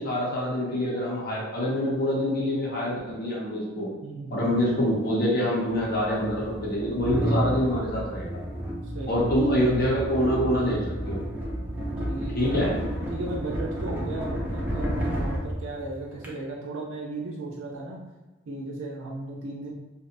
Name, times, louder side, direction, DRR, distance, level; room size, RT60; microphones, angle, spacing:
voice 1, 0.0-3.9 4.3-8.4 9.1-11.2 12.3-12.7, equal, 50° left, -5 dB, 0.7 m, -26 dB
voice 2, 4.0-4.5 8.9-10.2 12.0-12.8 13.1-18.0 18.5-19.7, right 2 dB, 75° right, -4 dB, 0.4 m, -36 dB
sound 1, 4.6-4.7 5.7-16.3, equal, 10° right, 0.4 m, -31 dB
2.6 x 2.0 x 2.4 m, 1.2 s
head